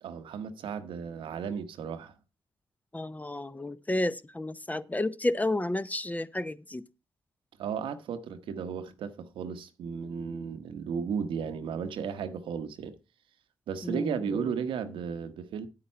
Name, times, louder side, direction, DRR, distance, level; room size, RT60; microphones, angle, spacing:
voice 1, 0.0-2.1 7.6-13.0 13.7-15.7, right 6 dB, 80° right, 1.0 m, -34 dB
voice 2, 2.9-6.8 13.8-14.5, left 1 dB, 20° left, 0.7 m, -31 dB
9.1 x 8.8 x 4.4 m
supercardioid pair, 45°, 9 cm